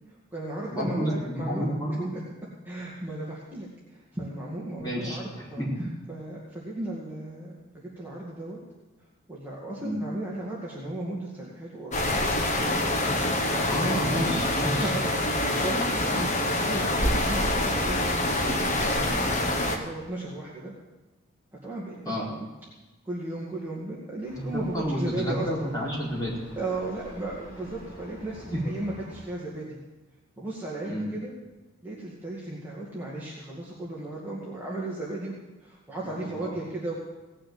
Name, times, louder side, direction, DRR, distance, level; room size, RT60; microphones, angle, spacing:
voice 1, 0.1-1.7 2.6-5.6 6.1-8.6 9.3-12.1 13.4-14.0 14.6-18.1 18.9-20.7 21.6-22.5 23.0-25.7 26.6-29.8 30.4-31.3 31.8-35.3 35.6-37.0, right 2 dB, 10° right, -7 dB, 2.2 m, -35 dB
voice 2, 0.7-2.1 4.8-5.9 9.8-10.0 13.6-14.9 22.0-22.3 24.3-26.3 28.5-28.6 30.8-31.1 36.0-36.5, equal, 20° left, -7 dB, 4.9 m, -30 dB
sound 1, 11.9-19.8, left 1 dB, 35° left, 1.5 m, -26 dB
Vehicle, 24.2-29.2, equal, 55° left, 5.6 m, -47 dB
18.0 x 6.7 x 8.0 m, 1.1 s
head